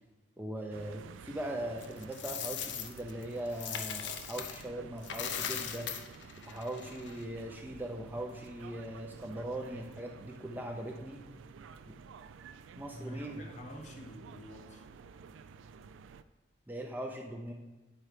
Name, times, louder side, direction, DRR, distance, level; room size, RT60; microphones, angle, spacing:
voice 1, 0.4-5.9 6.5-11.2 12.8-13.4 16.7-17.5, right 1 dB, 10° right, 1 dB, 0.4 m, -40 dB
sound 1, 0.7-16.2, right 5 dB, 80° right, 0.3 m, -52 dB
Coin (dropping), 1.8-4.6 5.0-7.2, left 8 dB, 65° left, 0.6 m, -39 dB
voice 2, 12.9-14.9, equal, 40° left, 3 dB, 0.9 m, -47 dB
9.4 x 4.5 x 4.9 m, 1.2 s
head